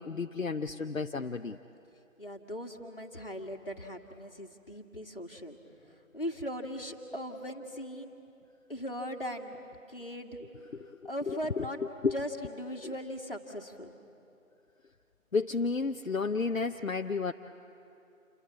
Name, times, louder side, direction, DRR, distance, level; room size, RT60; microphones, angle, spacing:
voice 1, 0.0-1.6 10.8-12.2 12.8-12.9 15.3-17.3, left 4 dB, 70° left, 6 dB, 0.8 m, -32 dB
voice 2, 2.2-5.6 6.1-8.1 8.7-9.6 9.9-10.4 11.0-11.8 12.1-13.9, equal, 40° left, 2 dB, 1.9 m, -39 dB
28.5 x 21.5 x 8.6 m, 2.7 s
figure-of-eight pair, 170°, 42 cm